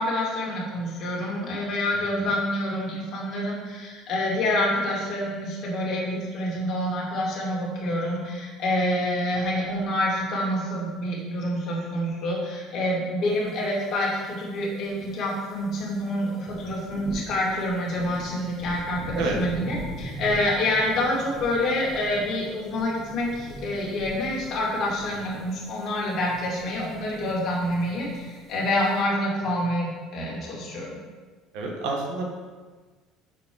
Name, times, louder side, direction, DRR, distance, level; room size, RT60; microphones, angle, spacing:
voice 1, 0.0-31.0, left 1 dB, 45° left, -4 dB, 2.2 m, -27 dB
sound 1, 13.5-13.6 13.9-29.0, right 1 dB, 15° right, 1.5 m, -41 dB
voice 2, 31.5-32.3, right 3 dB, 70° right, 0 dB, 1.2 m, -30 dB
6.2 x 4.6 x 5.3 m, 1.4 s
cardioid pair, 150°, 0 cm